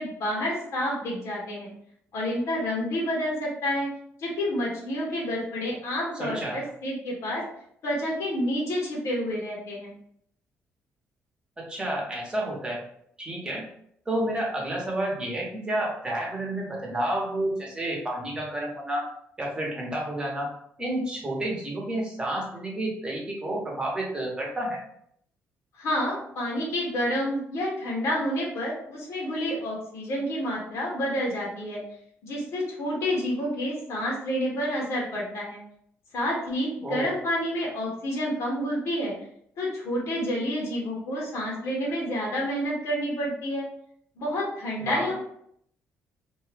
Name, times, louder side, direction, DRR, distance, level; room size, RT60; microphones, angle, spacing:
voice 1, 0.0-1.7 2.1-3.9 4.2-7.4 7.8-9.9 25.7-31.8 32.2-35.6 36.1-39.1 39.6-43.7 44.2-45.1, equal, 75° left, -2 dB, 1.0 m, -29 dB
voice 2, 6.2-6.6 11.7-12.8 13.2-13.7 14.1-19.0 19.4-20.5 20.8-24.8 36.8-37.1 44.8-45.1, right 1 dB, 20° right, -2 dB, 1.0 m, -30 dB
2.7 x 2.3 x 3.3 m, 0.69 s
cardioid pair, 115°, 5 cm